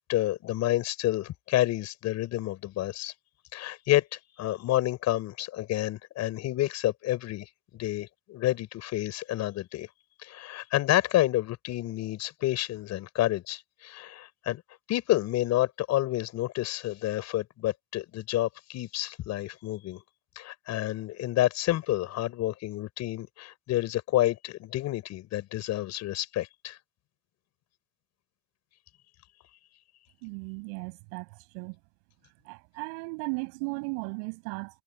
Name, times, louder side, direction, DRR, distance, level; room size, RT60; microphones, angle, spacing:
voice 1, 0.0-3.1 3.5-9.9 10.2-14.6 14.9-20.0 20.4-26.8, left 15 dB, 50° left, 6.5 m, -29 dB
voice 2, 30.2-31.8 32.4-34.8, right 36 dB, 75° right, 7.6 m, -36 dB
supercardioid pair, 120°, 33 cm